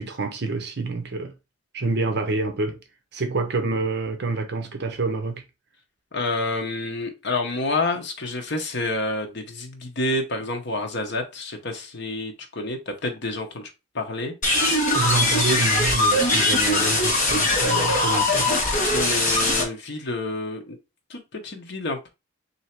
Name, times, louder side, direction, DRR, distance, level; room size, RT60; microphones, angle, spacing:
voice 1, 0.0-1.3 1.7-2.8 3.1-5.4 14.9-18.5, right 3 dB, 55° right, 0.7 m, -27 dB
voice 2, 6.1-13.7 13.9-14.3 18.8-20.8 21.1-22.1, left 2 dB, 55° left, 0.9 m, -29 dB
sound 1, 14.4-19.6, left 2 dB, 40° left, 1.2 m, -21 dB
3.3 x 2.7 x 4.3 m
head